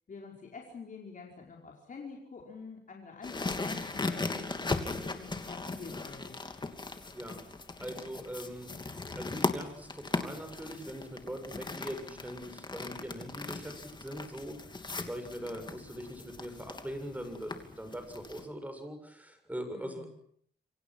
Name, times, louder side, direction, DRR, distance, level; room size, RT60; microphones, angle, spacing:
voice 1, 0.1-6.4 19.7-20.1, left 4 dB, 50° left, 0 dB, 5.0 m, -47 dB
sound 1, 3.2-18.4, left 3 dB, 25° left, 2.9 m, -38 dB
voice 2, 7.8-14.6 14.9-20.2, equal, 10° right, 7 dB, 7.1 m, -42 dB
28.5 x 24.5 x 6.2 m, 0.63 s
wide cardioid pair, 120°, 18 cm